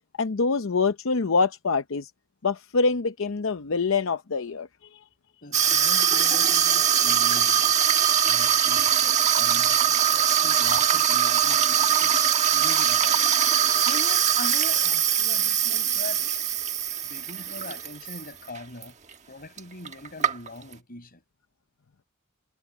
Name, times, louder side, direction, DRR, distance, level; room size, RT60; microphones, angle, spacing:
voice 1, 0.2-2.1 2.4-4.7, left 4 dB, 65° left, 0.7 m, -25 dB
voice 2, 5.4-8.0 8.3-12.1 12.5-13.4 13.9-16.2 17.0-18.9 19.3-21.2, left 2 dB, 45° left, 5.3 m, -41 dB
Water tap faucet / Sink (filling or washing), 5.5-18.2 18.5-18.8 19.6-19.7 19.8-20.7, right 9 dB, 35° right, 1.3 m, -22 dB
head